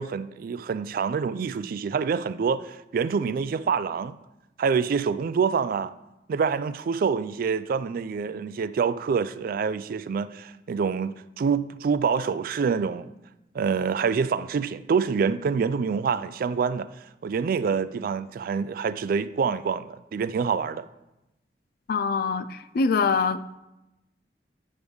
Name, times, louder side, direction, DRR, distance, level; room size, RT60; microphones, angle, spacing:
voice 1, 0.0-4.2 4.6-5.9 6.3-13.1 13.5-16.9 17.2-20.9, right 6 dB, 55° right, 0.3 m, -26 dB
voice 2, 21.9-23.6, left 4 dB, 60° left, 0.4 m, -24 dB
9.7 x 3.4 x 6.2 m
head